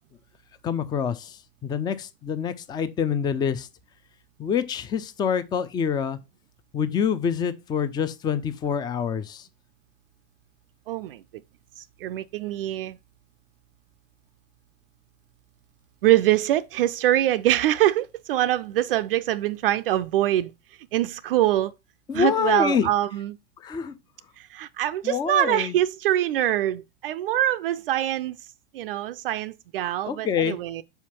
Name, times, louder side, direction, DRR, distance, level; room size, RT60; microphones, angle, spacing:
voice 1, 0.6-3.7 4.4-6.2 6.7-9.5 22.1-22.9 23.6-23.9 25.0-25.8 30.0-30.6, left 7 dB, 15° left, 0.4 m, -26 dB
voice 2, 10.9-11.2 11.8-13.0 16.0-20.5 20.9-21.7 22.1-23.4 24.4-28.4 28.7-30.8, right 13 dB, 55° right, 0.4 m, -24 dB
5.7 x 4.5 x 4.2 m
figure-of-eight pair, 90°, 34 cm